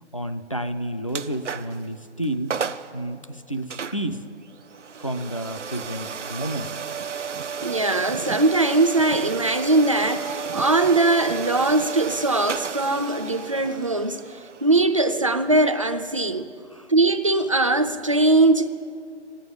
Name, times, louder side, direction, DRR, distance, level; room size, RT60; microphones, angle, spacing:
voice 1, 0.1-2.6 2.9-4.2 5.0-6.7 16.7-16.9, right 1 dB, 30° left, 0.4 m, -30 dB
sound 1, 1.1-1.9 2.2-2.3 2.5-2.9 3.7-16.4, right 6 dB, 80° right, 0.7 m, -33 dB
voice 2, 7.6-14.2 14.6-16.5 16.9-18.7, right 2 dB, 30° right, 0.5 m, -21 dB
15.5 x 8.9 x 9.5 m
figure-of-eight pair, 155°, 35 cm